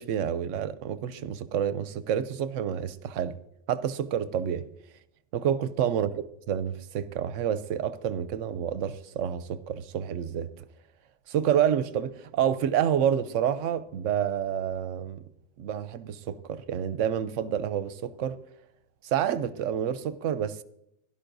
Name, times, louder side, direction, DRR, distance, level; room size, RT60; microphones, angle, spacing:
voice 1, 0.0-3.4 3.7-4.6 5.3-10.5 11.3-15.2 15.6-18.4 19.0-20.6, right 9 dB, 75° right, 0.9 m, -28 dB
16.5 x 11.5 x 2.6 m
omnidirectional pair, 1.4 m